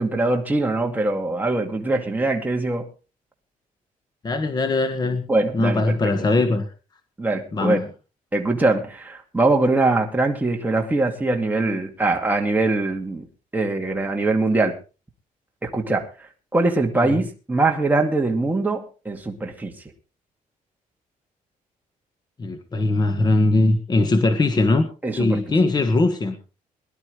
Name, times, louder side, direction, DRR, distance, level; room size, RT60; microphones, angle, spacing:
voice 1, 0.0-2.9 5.3-6.1 7.2-7.8 8.3-13.3 13.5-14.8 15.6-16.3 16.5-19.7 25.0-25.4, right 2 dB, 10° right, 2 dB, 2.3 m, -22 dB
voice 2, 4.2-5.2 5.5-6.7 7.5-7.8 17.0-17.2 22.4-24.9 25.1-26.3, left 2 dB, 30° left, 8 dB, 1.5 m, -20 dB
21.5 x 12.0 x 3.2 m, 0.32 s
cardioid pair, 130°, 15 cm